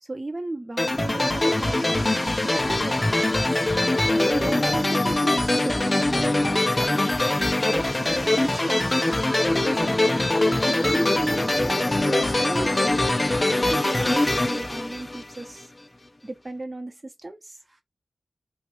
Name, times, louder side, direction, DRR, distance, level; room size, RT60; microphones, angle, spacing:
voice 1, 0.0-3.5 4.2-7.2 7.7-9.1 9.6-10.4 10.7-15.7 16.2-17.6, right 2 dB, 30° right, 0.8 m, -35 dB
sound 1, 0.8-15.6, left 2 dB, 20° left, 0.4 m, -23 dB
3.0 x 2.2 x 3.0 m
wide cardioid pair, 90°, 0 cm